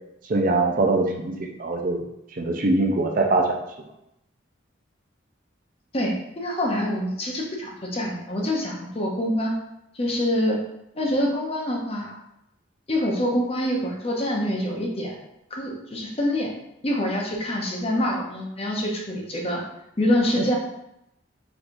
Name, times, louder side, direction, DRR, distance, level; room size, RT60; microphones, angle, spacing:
voice 1, 0.3-2.0 2.3-3.5, right 2 dB, 45° right, 2 dB, 0.5 m, -22 dB
voice 2, 5.9-9.5 9.9-10.6 10.9-12.2 12.9-15.2 15.5-16.5 16.8-19.6 20.0-20.6, left 1 dB, 30° left, 0 dB, 0.7 m, -25 dB
4.5 x 3.8 x 2.6 m, 0.83 s
head